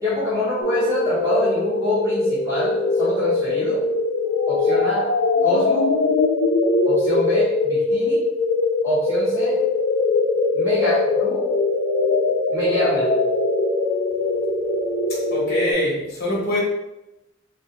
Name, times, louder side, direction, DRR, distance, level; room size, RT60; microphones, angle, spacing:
voice 1, 0.0-3.8 4.5-5.1 5.4-5.9 6.8-8.2 8.8-9.5 10.5-11.4 12.5-13.1, left 1 dB, 20° right, -11 dB, 1.5 m, -25 dB
sound 1, 0.6-15.7, left 3 dB, 75° left, 0.6 m, -21 dB
voice 2, 15.3-16.6, left 1 dB, 55° left, -3 dB, 1.2 m, -23 dB
6.5 x 2.6 x 2.4 m, 0.93 s
head